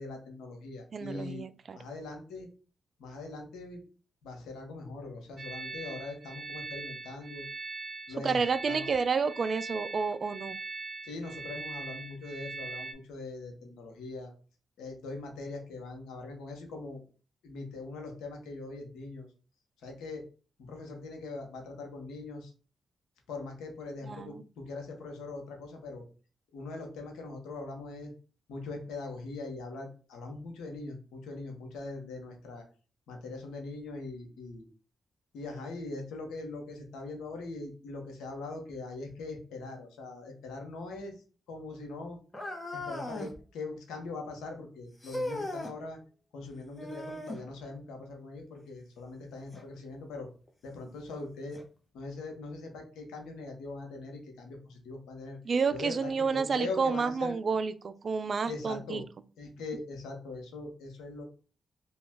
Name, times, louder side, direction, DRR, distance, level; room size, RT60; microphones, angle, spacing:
voice 1, 0.0-1.5 1.7-2.5 3.0-3.8 4.2-7.4 8.1-8.9 11.0-14.3 14.8-17.0 17.4-19.3 19.8-20.2 20.6-22.5 23.3-26.0 26.5-28.1 28.5-32.6 33.1-34.6 35.3-41.1 41.5-42.2 42.7-46.0 46.3-50.3 50.6-51.6 51.9-55.4 55.7-57.4 58.4-59.0 59.4-61.2, left 3 dB, 90° left, 3 dB, 0.8 m, -41 dB
voice 2, 0.9-1.8 8.2-10.6 24.0-24.4 55.5-59.0, right 5 dB, 55° right, 13 dB, 0.3 m, -30 dB
sound 1, 5.4-12.9, right 3 dB, 40° right, 0.8 m, -41 dB
sound 2, 42.3-43.4 45.0-45.8 46.8-47.5 49.5-49.6 50.5-50.6 51.5-51.6, left 1 dB, 25° left, 0.9 m, -37 dB
2.9 x 2.3 x 3.5 m, 0.38 s
supercardioid pair, 50°, 0 cm